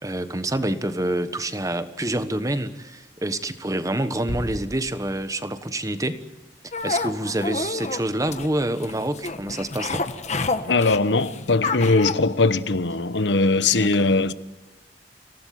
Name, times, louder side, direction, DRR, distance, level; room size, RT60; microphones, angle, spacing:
voice 1, 0.0-6.2 6.8-10.0 13.6-13.9, right 1 dB, 20° right, 1.3 m, -27 dB
Bass drum, 4.3-5.7, equal, 65° left, 2.4 m, -36 dB
sound 1, 6.7-12.1, left 3 dB, 40° left, 1.4 m, -29 dB
voice 2, 10.7-14.3, left 3 dB, 80° left, 1.1 m, -20 dB
26.5 x 17.5 x 9.4 m
head